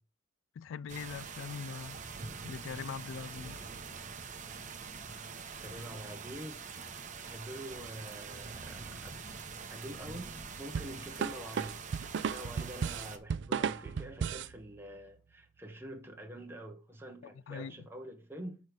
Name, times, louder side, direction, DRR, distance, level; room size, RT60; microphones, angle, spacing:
voice 1, 0.6-2.0 2.4-3.6 13.5-13.6 17.2-17.8, left 6 dB, 85° left, 0.3 m, -42 dB
sound 1, 0.9-13.2, right 5 dB, 40° right, 0.9 m, -45 dB
voice 2, 5.6-6.9 7.2-11.8 12.3-18.6, equal, 10° right, 1.1 m, -46 dB
sound 2, 10.7-14.6, right 6 dB, 65° right, 0.4 m, -34 dB
6.5 x 5.2 x 4.7 m
head